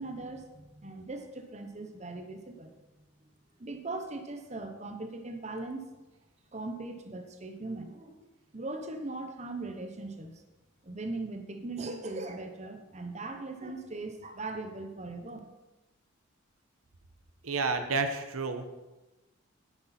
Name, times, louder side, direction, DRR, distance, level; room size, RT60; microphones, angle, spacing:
voice 1, 0.0-2.7 3.6-5.9 6.5-8.2 8.5-10.4 10.8-15.4, right 2 dB, 30° right, 6 dB, 0.9 m, -39 dB
voice 2, 17.4-18.6, right 4 dB, 90° right, 8 dB, 1.0 m, -30 dB
10.0 x 9.5 x 4.3 m, 1.0 s
head